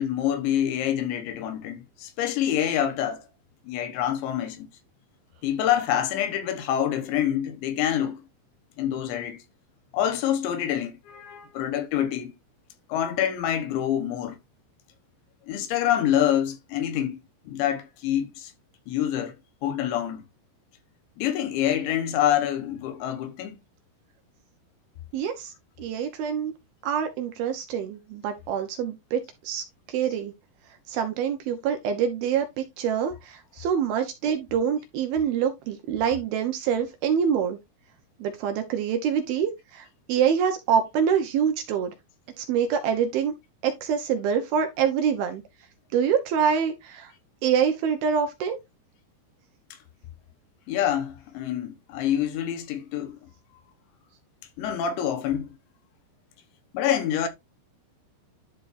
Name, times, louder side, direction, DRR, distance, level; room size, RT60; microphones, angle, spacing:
voice 1, 0.0-3.2 3.7-4.7 5.4-8.2 8.8-9.4 9.9-12.3 12.9-14.4 15.5-18.5 18.9-19.4 19.6-20.2 21.2-23.6 50.7-53.2 54.6-55.5 56.7-57.3, left 10 dB, 85° left, 3.5 m, -26 dB
voice 2, 25.1-25.5 25.8-26.5 26.8-30.3 30.9-37.6 38.2-41.9 42.4-43.3 43.6-45.4 45.9-47.1 47.4-48.6, right 7 dB, 70° right, 2.5 m, -25 dB
11.5 x 4.4 x 2.6 m
omnidirectional pair, 5.1 m